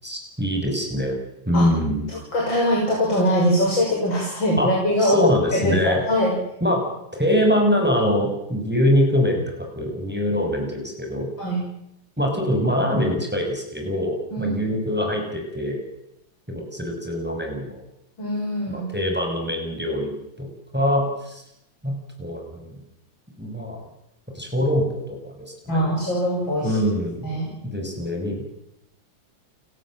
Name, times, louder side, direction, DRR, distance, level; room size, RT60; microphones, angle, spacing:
voice 1, 0.0-1.2 1.5-2.0 4.6-4.7 5.0-6.0 6.6-6.8 7.1-11.3 12.2-15.8 16.5-17.8 18.7-20.1 20.4-20.5 20.7-21.4 21.8-22.7 23.4-23.8 24.3-25.8 26.6-27.4 27.6-28.4, equal, 5° right, 2 dB, 6.5 m, -23 dB
voice 2, 2.1-5.2 5.5-6.3 11.4-11.6 14.3-14.6 18.2-18.8 25.7-26.8 27.2-27.5, equal, 60° left, -1 dB, 7.1 m, -22 dB
29.5 x 17.5 x 7.7 m, 0.81 s
omnidirectional pair, 2.4 m